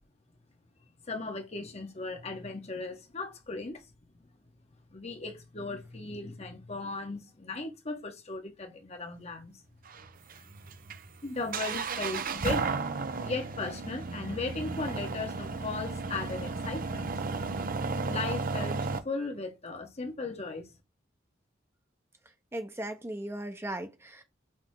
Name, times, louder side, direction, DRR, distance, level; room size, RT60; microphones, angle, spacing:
voice 1, 1.1-3.8 4.9-9.6 10.4-10.5 11.2-12.7 13.2-17.2 18.0-20.7, left 3 dB, 35° left, 1.2 m, -37 dB
sound 1, 9.9-19.0, right 4 dB, 50° right, 0.7 m, -34 dB
voice 2, 22.5-24.2, right 1 dB, 15° right, 0.9 m, -37 dB
6.0 x 3.5 x 4.7 m
head